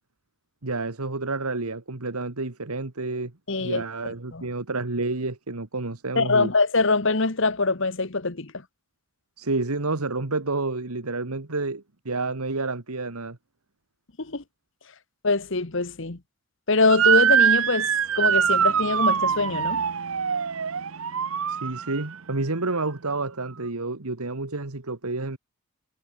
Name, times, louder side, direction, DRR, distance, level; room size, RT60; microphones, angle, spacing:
voice 1, 0.6-3.3 3.6-6.5 9.4-13.4 21.5-25.4, right 3 dB, 85° right, 1.8 m, -29 dB
voice 2, 3.5-4.4 6.2-8.5 14.2-14.4 15.2-16.2 16.7-17.9 18.1-19.8, left 3 dB, 55° left, 1.4 m, -23 dB
Motor vehicle (road) / Siren, 16.9-22.2, right 8 dB, 70° right, 0.8 m, -23 dB
head